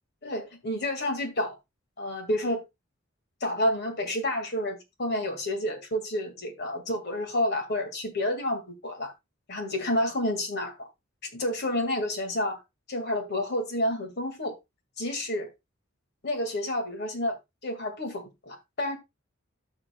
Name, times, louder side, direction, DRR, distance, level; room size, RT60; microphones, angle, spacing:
voice 1, 0.2-1.5 2.0-2.6 3.4-9.1 9.5-10.8 11.3-12.6 12.9-14.5 15.0-15.5 16.2-17.4 17.6-19.0, left 1 dB, 55° left, 1.9 m, -29 dB
14.5 x 5.8 x 2.2 m
head